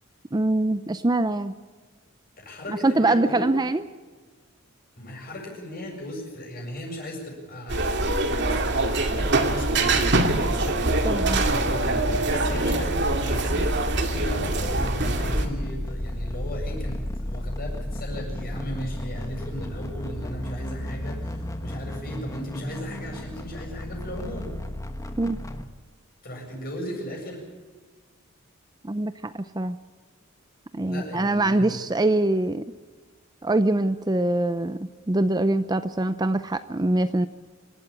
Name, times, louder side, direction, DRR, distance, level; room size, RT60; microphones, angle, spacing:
voice 1, 0.3-1.5 2.7-3.8 11.0-11.4 25.2-25.4 28.8-29.8 30.7-32.7 33.4-37.3, right 2 dB, 20° right, 12 dB, 0.5 m, -24 dB
voice 2, 2.4-3.5 5.0-7.9 8.4-10.8 12.4-13.7 14.1-24.5 26.2-27.5 30.8-31.7, equal, 45° left, 1 dB, 7.6 m, -36 dB
sound 1, 7.7-15.5, right 2 dB, 55° right, 2.2 m, -24 dB
sound 2, 9.9-25.6, left 1 dB, 15° left, 1.2 m, -33 dB
26.5 x 13.0 x 8.7 m, 1.4 s
head